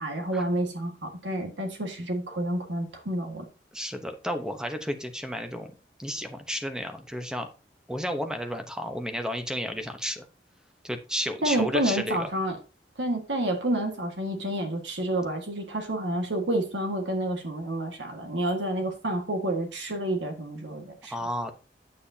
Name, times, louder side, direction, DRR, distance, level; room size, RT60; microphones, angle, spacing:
voice 1, 0.0-3.4 11.4-12.6 13.0-21.1, right 1 dB, 90° right, 3 dB, 1.7 m, -29 dB
voice 2, 3.7-5.7 6.0-7.5 7.9-10.2 10.8-12.3 21.1-21.6, equal, 5° right, 7 dB, 0.9 m, -32 dB
9.5 x 8.4 x 2.8 m, 0.32 s
head